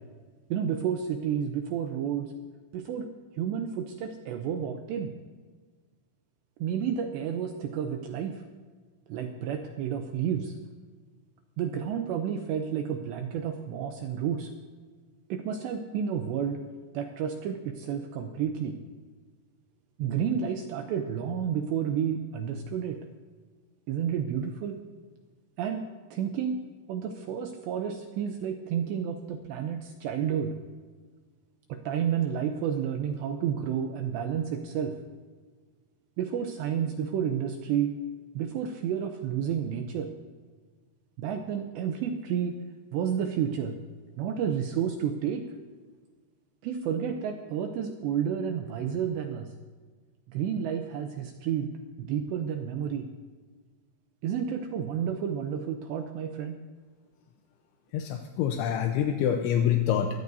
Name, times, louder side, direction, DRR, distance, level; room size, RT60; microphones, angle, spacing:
voice 1, 0.5-2.3 2.7-3.1 3.4-5.1 6.6-8.4 9.1-10.6 11.6-14.5 15.3-16.6 16.9-18.8 20.0-23.0 23.9-24.8 25.6-25.8 26.1-26.6 26.9-30.5 31.7-34.9 36.2-38.0 38.3-40.1 41.2-42.6 42.9-43.8 44.2-45.4 46.6-49.5 50.3-51.7 52.0-53.1 54.2-56.6, right 8 dB, 80° right, 5 dB, 2.6 m, -30 dB
voice 2, 57.9-60.1, left 9 dB, 80° left, 4 dB, 3.0 m, -26 dB
23.0 x 16.5 x 2.7 m, 1.5 s
omnidirectional pair, 5.7 m